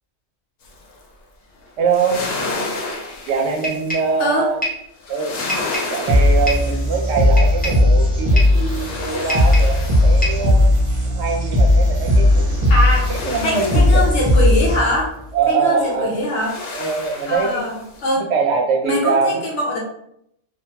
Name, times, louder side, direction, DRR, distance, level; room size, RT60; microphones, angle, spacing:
sound 1, 0.6-1.0 1.6-4.4 5.0-7.8 8.2-11.2 12.0-14.8 16.1-18.2, left 3 dB, 90° left, 1.0 m, -32 dB
voice 1, 1.8-2.2 3.3-4.6 5.1-5.4 5.9-10.7 11.0-12.6 13.1-14.1 15.3-16.2 16.7-17.6 18.2-19.4, right 5 dB, 70° right, 2 dB, 0.8 m, -22 dB
sound 2, 3.6-4.2 4.6-4.9 5.5-6.0 6.5-6.7 7.4-7.9 8.4-8.6 9.3-9.8 10.2-10.5, equal, 10° left, 0.5 m, -27 dB
voice 2, 4.2-4.5 12.7-13.1 13.4-15.1 15.5-16.5 17.3-18.2 18.8-19.8, left 1 dB, 70° left, -3 dB, 1.1 m, -22 dB
sound 3, 6.1-15.1, left 1 dB, 45° right, 0.4 m, -16 dB
2.4 x 2.2 x 2.8 m, 0.76 s
omnidirectional pair, 1.3 m